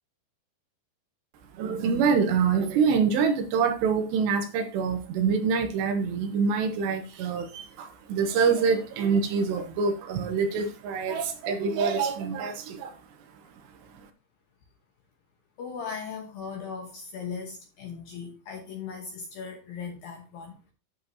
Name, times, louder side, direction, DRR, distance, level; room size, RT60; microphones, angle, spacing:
voice 1, 1.5-13.0, right 5 dB, 75° right, 2.8 m, -25 dB
voice 2, 15.6-20.7, left 6 dB, 75° left, 2.2 m, -38 dB
10.5 x 7.1 x 2.7 m
omnidirectional pair, 5.6 m